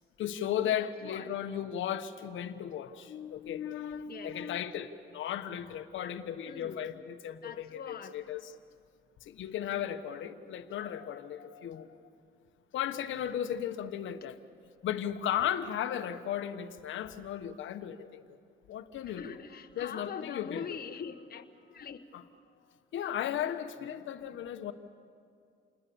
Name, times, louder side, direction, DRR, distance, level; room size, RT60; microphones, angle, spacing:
voice 1, 0.2-8.5 9.2-12.0 12.7-14.4 14.8-18.4 18.7-19.4 19.8-20.8 22.1-22.2 22.9-24.7, left 10 dB, 75° left, 9 dB, 1.2 m, -35 dB
voice 2, 0.7-1.4 2.8-3.0 4.1-4.4 6.5-6.8 7.4-8.2 19.1-21.4 21.7-22.0 22.7-22.8, left 7 dB, 50° left, 6 dB, 1.4 m, -43 dB
28.5 x 20.5 x 7.0 m, 2.4 s
cardioid pair, 90°, 20 cm